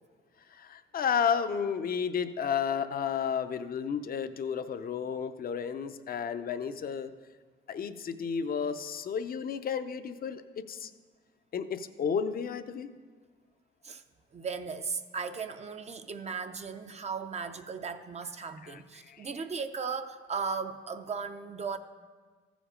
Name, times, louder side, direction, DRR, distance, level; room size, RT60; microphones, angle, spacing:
voice 1, 0.5-7.1 7.7-10.9 11.5-12.9 18.6-19.3, left 7 dB, 50° left, 11 dB, 0.6 m, -32 dB
voice 2, 14.3-21.8, right 5 dB, 35° right, 8 dB, 0.5 m, -36 dB
14.5 x 5.1 x 5.0 m, 1.5 s
cardioid pair, 90°, 20 cm